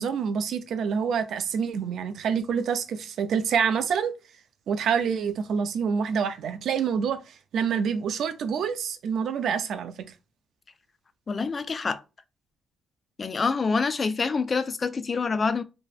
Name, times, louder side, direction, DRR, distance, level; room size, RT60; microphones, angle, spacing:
voice 1, 0.0-4.1 4.7-9.9, right 6 dB, 70° right, 0.4 m, -27 dB
voice 2, 11.3-12.0 13.2-15.6, left 4 dB, 35° left, 0.3 m, -26 dB
3.0 x 2.6 x 2.4 m
cardioid pair, 90°, 0 cm